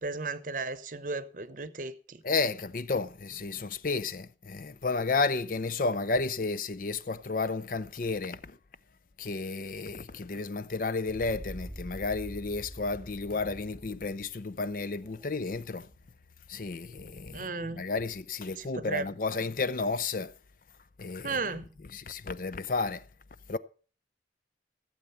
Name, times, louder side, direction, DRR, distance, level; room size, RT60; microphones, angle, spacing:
voice 1, 0.0-2.2 17.3-17.8 18.6-19.1 21.2-21.7, right 3 dB, 45° right, 0.8 m, -35 dB
voice 2, 2.2-8.6 9.2-15.9 16.5-20.3 21.0-21.4 21.9-23.0 23.5-23.6, left 3 dB, 50° left, 0.5 m, -32 dB
sound 1, 11.0-14.3 14.7-15.6 15.9-16.0 17.0-17.4, equal, 5° right, 1.2 m, -46 dB
15.0 x 7.8 x 5.6 m
head